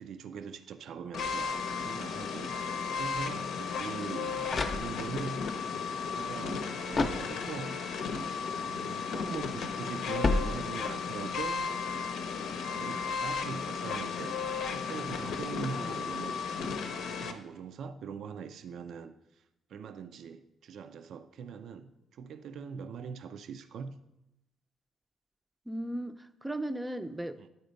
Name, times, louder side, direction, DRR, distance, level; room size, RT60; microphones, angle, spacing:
voice 1, 0.0-5.5 6.0-7.8 8.5-11.7 12.7-14.4 14.7-16.5 17.1-19.1 19.7-23.9 27.4-27.5, right 6 dB, 70° right, 0.4 m, -42 dB
sound 1, 1.1-17.3, left 5 dB, 80° left, 0.7 m, -35 dB
sound 2, 4.5-5.4 6.9-7.8 10.2-11.1, left 3 dB, 45° left, 0.7 m, -32 dB
voice 2, 9.1-9.5 15.8-16.0 25.7-27.5, right 1 dB, 10° right, 0.5 m, -37 dB
9.5 x 4.3 x 5.1 m
cardioid pair, 90°, 0 cm